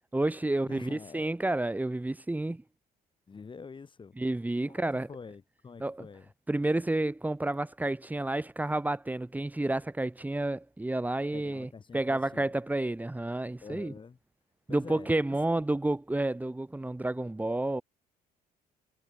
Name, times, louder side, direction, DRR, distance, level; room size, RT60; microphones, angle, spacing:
voice 1, 0.1-2.6 4.2-5.1 5.8-6.0 6.5-13.9 14.7-17.8, right 2 dB, 10° right, 3.0 m, -30 dB
voice 2, 0.7-1.3 3.3-4.1 4.7-6.3 11.3-12.6 13.6-14.2 14.7-15.1, left 5 dB, 30° left, 6.9 m, -46 dB
cardioid pair, 110°, 17 cm